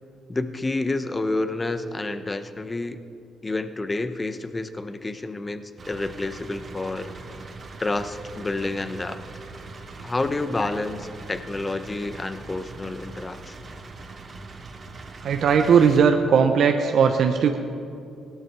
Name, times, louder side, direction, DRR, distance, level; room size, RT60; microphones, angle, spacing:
voice 1, 0.3-3.0 3.4-7.1 7.8-9.2 10.0-13.6, left 2 dB, 20° left, 11 dB, 0.8 m, -29 dB
sound 1, 5.8-16.0, right 3 dB, 40° right, 1.5 m, -41 dB
voice 2, 15.2-17.6, right 6 dB, 65° right, 5 dB, 0.7 m, -18 dB
17.0 x 12.5 x 4.6 m, 2.6 s
cardioid pair, 90°, 0 cm